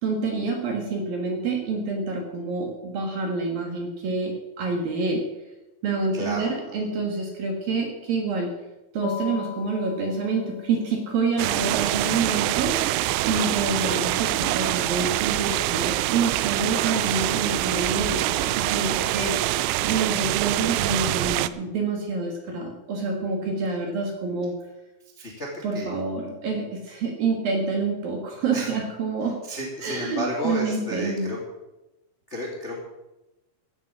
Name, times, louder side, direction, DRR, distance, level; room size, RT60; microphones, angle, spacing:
voice 1, 0.0-5.2 5.8-8.5 8.9-12.7 13.2-19.3 19.8-24.5 25.6-29.4 29.8-31.3, right 4 dB, 60° right, 2 dB, 2.8 m, -27 dB
voice 2, 6.1-6.7 12.0-12.4 13.5-14.0 25.1-25.9 28.5-28.7 29.4-31.4 32.3-32.8, equal, 35° left, -2 dB, 1.1 m, -33 dB
sound 1, 9.0-15.2, left 10 dB, 80° left, 3.5 m, -40 dB
sound 2, 11.4-21.5, right 16 dB, 85° right, 2.8 m, -25 dB
15.5 x 8.9 x 6.2 m, 1.0 s
omnidirectional pair, 5.7 m